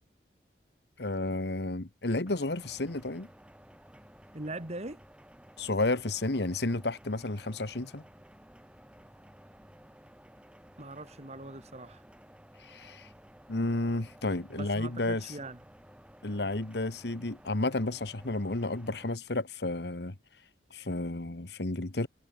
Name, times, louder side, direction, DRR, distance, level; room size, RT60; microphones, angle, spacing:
voice 1, 1.0-3.3 5.6-8.0 12.7-13.1 13.5-15.4 16.2-20.1 20.7-22.1, left 2 dB, 70° left, 1.5 m, -32 dB
sound 1, 2.3-19.2, equal, 5° right, 7.1 m, -55 dB
voice 2, 4.3-5.0 10.8-12.0 14.6-15.6, right 2 dB, 40° right, 2.8 m, -41 dB
head